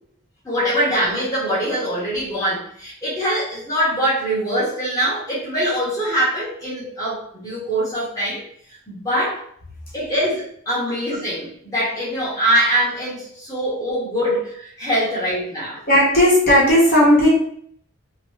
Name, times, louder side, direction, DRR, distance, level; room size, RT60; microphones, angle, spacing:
voice 1, 0.4-8.4 8.9-9.4 9.9-15.8, equal, 15° left, -10 dB, 1.1 m, -23 dB
voice 2, 15.9-17.3, left 1 dB, 45° left, -6 dB, 1.2 m, -15 dB
3.0 x 2.5 x 3.2 m, 0.64 s
head